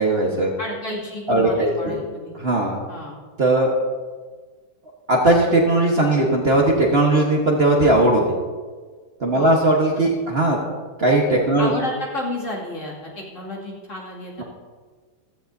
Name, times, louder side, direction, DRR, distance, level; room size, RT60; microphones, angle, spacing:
voice 1, 0.0-0.5 1.3-2.0 2.3-2.8 3.4-3.7 5.1-8.3 9.2-10.6 11.0-11.7, right 2 dB, 40° right, -1 dB, 1.3 m, -18 dB
voice 2, 0.6-2.3 2.9-3.1 9.3-9.7 10.2-10.3 11.6-14.4, left 1 dB, 45° left, -4 dB, 2.7 m, -31 dB
15.5 x 14.0 x 2.7 m, 1.5 s
omnidirectional pair, 1.9 m